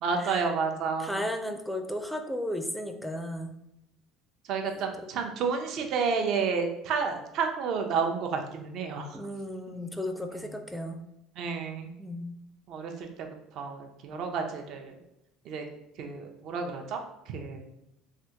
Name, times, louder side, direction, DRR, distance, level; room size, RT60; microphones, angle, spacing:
voice 1, 0.0-1.2 4.5-9.1 9.7-9.8 11.4-11.9 12.7-12.9 13.2-13.3 13.6-14.9 15.5-15.6 16.0-17.0 17.3-17.6, right 5 dB, 60° right, 4 dB, 0.6 m, -30 dB
voice 2, 1.0-3.5 4.7-4.9 9.1-11.0 12.0-12.3, left 1 dB, ahead, 5 dB, 0.4 m, -34 dB
3.4 x 2.4 x 2.8 m, 0.84 s
supercardioid pair, 105°, 0 cm